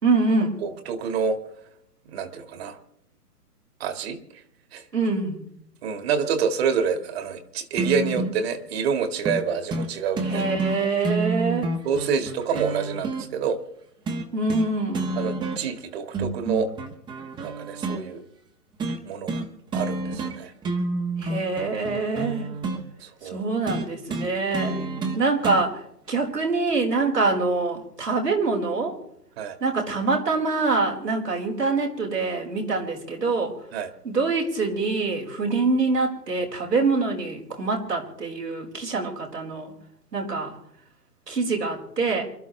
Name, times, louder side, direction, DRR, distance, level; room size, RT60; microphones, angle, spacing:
voice 1, 0.0-0.6 4.9-5.4 10.3-11.7 14.3-15.1 21.2-22.5 23.3-24.8 25.1-25.8 26.1-28.9 29.6-33.5 34.0-39.7 40.1-40.6 41.3-42.2, right 3 dB, 90° right, -1 dB, 4.4 m, -25 dB
voice 2, 0.6-1.4 2.1-2.8 3.8-4.2 4.7-4.8 5.8-10.5 11.8-13.6 15.2-16.7 17.4-18.2 19.0-19.4 19.7-20.5 23.0-23.4 24.7-24.9 29.4-29.6 33.7-33.9, right 6 dB, 40° right, 8 dB, 1.9 m, -27 dB
sound 1, 7.8-8.4 9.2-9.4 9.7-9.9 10.2-13.2 14.1-14.7 14.9-15.8 16.1-18.0 18.8-19.0 19.3-19.5 19.7-20.4 20.6-22.8 23.7-25.6 26.7-26.8, right 3 dB, 10° right, 1.0 m, -29 dB
27.5 x 12.5 x 3.3 m, 0.76 s
figure-of-eight pair, 130°, 47 cm